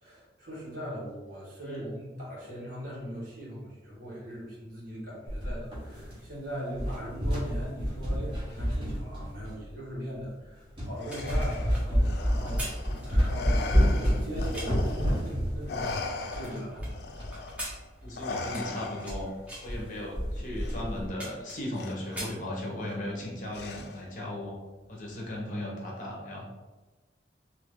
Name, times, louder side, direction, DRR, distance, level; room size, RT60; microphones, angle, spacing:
voice 1, 0.0-17.0 17.3-17.5, equal, 50° right, -7 dB, 1.3 m, -40 dB
sound 1, 5.3-6.4 6.7-9.7 10.3-10.4 10.8-11.0 11.3-17.4 17.6-17.7 18.0-18.1 18.5-18.7 19.1-19.2 19.5-19.8 20.1-21.1, equal, 30° right, 1.0 m, -29 dB
Respiratory sounds, 11.0-15.3 15.7-19.3 20.6-20.8 21.8-22.3 23.5-24.2, left 3 dB, 65° left, 0.3 m, -39 dB
sound 2, 11.1-14.9 15.5-16.9 17.3-19.2 19.5-19.8 20.4-20.5 20.7-21.8 22.0-23.0 23.4-23.6, right 1 dB, 5° right, 0.7 m, -42 dB
voice 2, 18.0-19.3 19.6-24.6 24.9-26.4, left 1 dB, 45° left, -2 dB, 0.7 m, -36 dB
2.9 x 2.5 x 3.5 m, 1.2 s
head